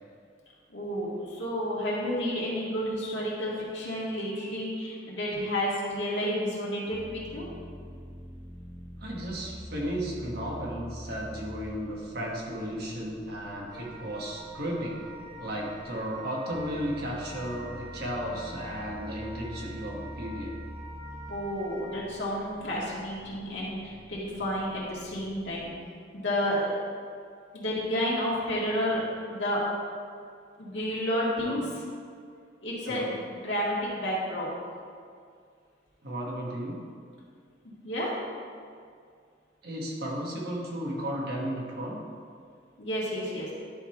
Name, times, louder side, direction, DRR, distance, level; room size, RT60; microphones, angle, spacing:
voice 1, 0.7-7.4 21.3-25.7 26.1-26.7 27.5-29.0 29.3-29.6 30.6-31.6 32.6-34.5 37.8-38.1 42.8-43.5, equal, 70° left, -6 dB, 2.0 m, -31 dB
sound 1, 6.9-16.1 16.5-25.7, equal, ahead, 0.6 m, -46 dB
voice 2, 9.0-15.0 15.4-20.6 31.4-31.6 32.8-33.1 36.0-36.8 39.6-42.0, equal, 55° right, -3 dB, 1.4 m, -34 dB
Wind instrument woodwind instrument, 13.7-22.0, equal, 20° right, 1.5 m, -46 dB
10.5 x 3.7 x 4.4 m, 2.2 s
head